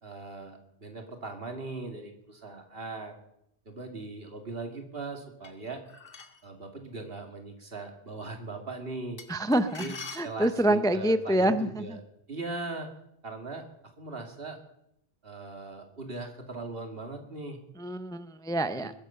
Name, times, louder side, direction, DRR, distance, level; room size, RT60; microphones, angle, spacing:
voice 1, 0.0-3.2 3.7-5.8 6.4-9.2 9.8-9.9 10.2-12.0 12.3-12.9 13.2-13.7 14.0-14.6 15.2-17.6 18.7-18.9, right 3 dB, 70° right, 4 dB, 2.6 m, -39 dB
sound 1, 5.4-6.5 9.2-10.8, left 4 dB, 60° left, 1.7 m, -44 dB
voice 2, 9.3-9.9 10.1-12.0 17.8-18.9, right 1 dB, 5° left, 11 dB, 0.5 m, -26 dB
21.5 x 10.5 x 5.7 m, 0.78 s
omnidirectional pair, 1.0 m